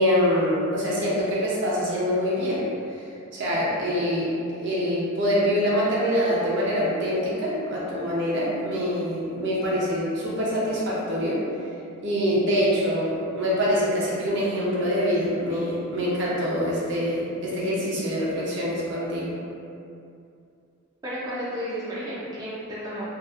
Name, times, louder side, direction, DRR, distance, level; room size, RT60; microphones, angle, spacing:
voice 1, 0.0-2.7 3.3-11.4 12.0-19.3, equal, 55° right, -6 dB, 0.6 m, -25 dB
voice 2, 21.0-23.0, equal, 15° right, -10 dB, 0.3 m, -32 dB
2.7 x 2.3 x 2.4 m, 2.5 s
head